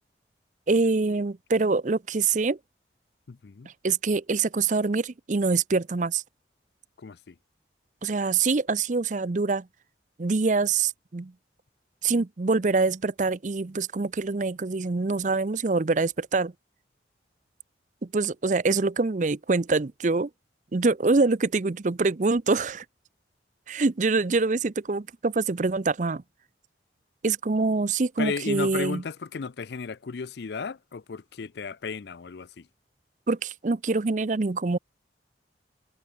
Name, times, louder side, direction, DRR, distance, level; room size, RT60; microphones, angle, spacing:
voice 1, 0.7-2.6 3.8-6.2 8.0-9.7 10.2-11.3 12.0-16.5 18.0-20.3 20.7-22.8 23.7-26.2 27.2-29.0 33.3-34.8, right 3 dB, 40° right, 0.6 m, -25 dB
voice 2, 3.3-3.7 7.0-7.4 28.2-32.7, left 5 dB, 65° left, 0.5 m, -34 dB
head